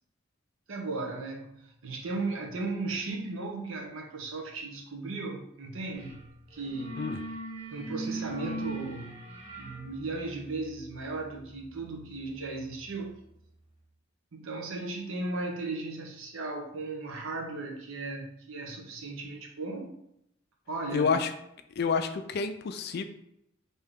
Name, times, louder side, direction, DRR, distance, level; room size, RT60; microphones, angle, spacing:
voice 1, 0.7-7.1 7.7-9.2 9.6-13.2 14.3-20.0 20.7-21.2, right 3 dB, 85° right, 1 dB, 0.7 m, -36 dB
sound 1, 6.0-6.2 6.5-13.1, right 2 dB, 45° right, 1.1 m, -41 dB
voice 2, 20.9-21.3 21.8-23.0, left 5 dB, 50° left, 8 dB, 0.3 m, -28 dB
3.4 x 2.7 x 3.6 m, 0.78 s
head